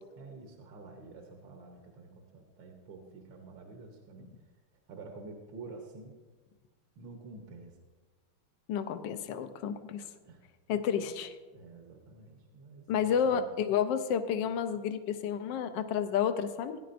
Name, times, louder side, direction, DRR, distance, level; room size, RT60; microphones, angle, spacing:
voice 1, 0.2-4.3 4.9-6.1 7.0-7.8 9.5-9.6 10.2-10.4 11.5-12.8 13.2-13.5, right 3 dB, 65° right, 2 dB, 1.6 m, -48 dB
voice 2, 8.7-10.0 10.7-11.4 12.9-16.8, left 8 dB, 70° left, 9 dB, 1.2 m, -30 dB
17.0 x 10.5 x 2.6 m, 1.4 s
omnidirectional pair, 2.3 m